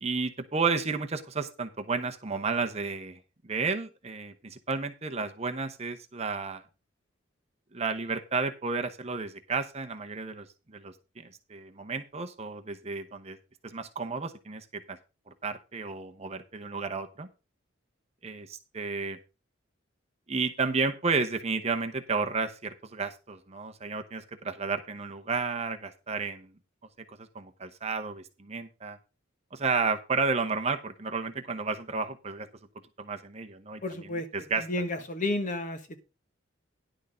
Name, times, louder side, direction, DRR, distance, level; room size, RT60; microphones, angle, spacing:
voice 1, 0.0-6.6 7.7-13.4 13.6-15.0 15.4-17.3 18.2-19.2 20.3-26.5 27.1-29.0 29.5-32.5 33.0-33.8 34.3-34.6, right 4 dB, 30° right, 6 dB, 0.9 m, -32 dB
voice 2, 33.8-34.3 34.6-36.0, left 2 dB, 40° left, 8 dB, 1.3 m, -32 dB
10.5 x 6.4 x 4.9 m, 0.29 s
head